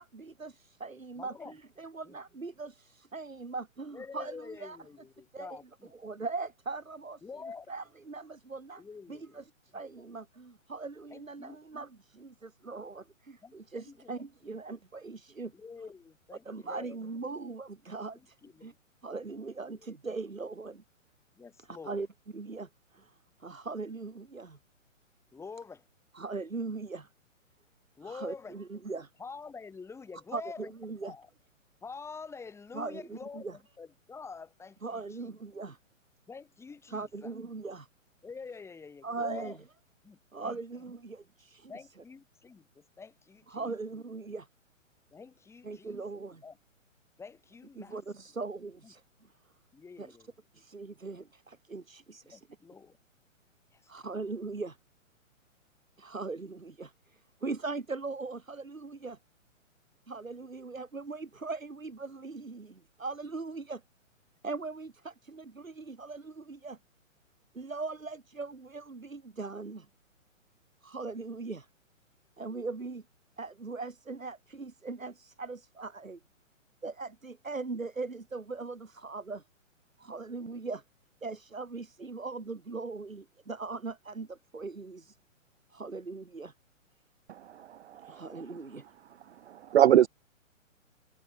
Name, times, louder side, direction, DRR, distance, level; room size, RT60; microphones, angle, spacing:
voice 1, 0.0-4.8 5.3-5.6 5.9-7.2 7.7-8.8 9.1-15.5 16.5-18.7 19.0-20.8 21.7-22.1 22.3-23.1 23.4-24.6 26.1-27.1 28.0-29.1 30.3-31.2 32.7-33.6 34.8-35.8 36.9-37.9 39.0-39.6 40.3-41.7 43.5-44.5 45.6-46.4 47.8-49.3 50.0-50.2 50.5-52.5 53.9-54.8 56.0-59.2 60.1-63.8 64.4-66.8 67.5-69.9 70.8-71.7 72.4-73.0 73.4-76.2 76.8-79.4 80.0-80.8 81.2-85.2 85.7-86.5 88.0-88.9, right 3 dB, 85° right, 3.7 m, -40 dB
voice 2, 1.2-1.5 2.1-2.2 3.9-5.9 7.2-7.7 8.8-9.4 11.1-11.6 13.4-14.1 15.5-17.0 18.4-18.7 21.4-22.0 25.3-25.8 28.0-28.6 29.2-30.7 31.0-31.3 31.8-35.4 36.3-37.3 38.2-39.6 40.0-40.5 41.7-43.7 45.1-46.0 46.4-46.6 47.2-48.0 48.8-48.9 49.7-50.3 52.2-53.0 53.7-54.1, left 5 dB, 5° left, 2.3 m, -47 dB
voice 3, 87.3-88.2 89.5-90.1, right 11 dB, 60° right, 0.5 m, -24 dB
figure-of-eight pair, 125°, 39 cm